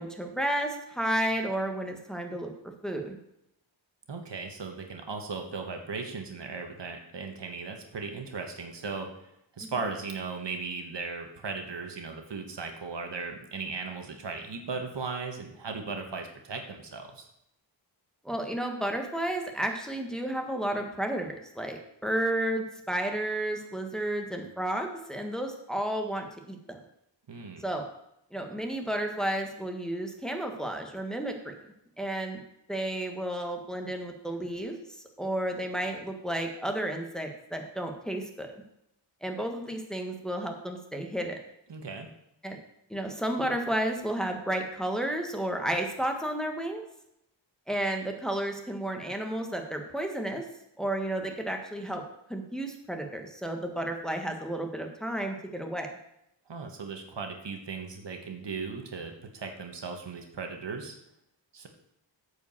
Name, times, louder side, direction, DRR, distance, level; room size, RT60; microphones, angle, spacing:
voice 1, 0.0-2.5 2.8-3.2 9.6-9.7 18.2-26.8 27.6-27.9 28.3-31.6 32.0-32.4 32.7-34.8 35.2-38.5 39.2-41.4 42.4-42.6 42.9-46.8 47.7-50.4 50.8-52.0 52.3-55.9, right 1 dB, ahead, 3 dB, 1.4 m, -32 dB
voice 2, 4.1-9.1 9.5-17.3 27.3-27.6 41.7-42.1 56.5-60.9 61.5-61.7, right 4 dB, 65° right, 4 dB, 1.5 m, -37 dB
9.0 x 5.1 x 7.2 m, 0.79 s
wide cardioid pair, 75°, 45 cm